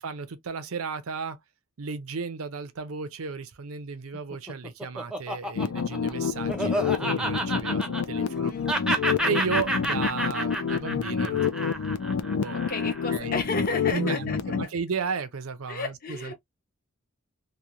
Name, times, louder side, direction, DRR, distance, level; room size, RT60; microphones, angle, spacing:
voice 1, 0.0-1.4 1.8-8.5 9.3-11.7 12.4-12.6 13.1-13.4 13.9-16.3, right 5 dB, 90° right, 0.6 m, -34 dB
Laughter, 4.1-8.4 8.7-13.1, right 1 dB, 5° right, 0.5 m, -30 dB
sound 1, 5.5-14.6, left 6 dB, 85° left, 0.4 m, -28 dB
voice 2, 8.2-8.7 12.5-14.4 15.7-16.3, left 3 dB, 45° left, 0.9 m, -33 dB
3.0 x 2.1 x 2.4 m
head